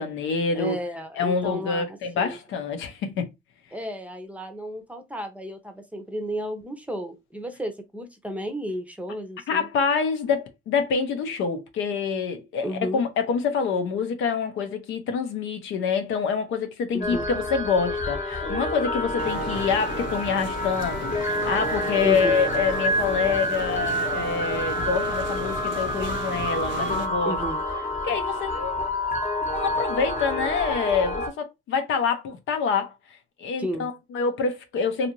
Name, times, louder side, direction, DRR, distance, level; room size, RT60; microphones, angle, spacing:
voice 1, 0.0-0.8 1.2-3.3 9.5-27.4 28.0-28.8 29.5-35.1, left 5 dB, 80° left, 0.7 m, -26 dB
voice 2, 0.5-2.4 3.7-9.7 12.6-13.0 16.9-17.3 22.0-22.4 27.3-27.6 33.6-33.9, equal, 5° right, 0.6 m, -33 dB
sound 1, 17.0-31.3, left 1 dB, 35° left, 0.9 m, -28 dB
sound 2, 19.2-27.1, right 7 dB, 70° right, 0.5 m, -37 dB
2.6 x 2.5 x 2.9 m
cardioid pair, 90°, 20 cm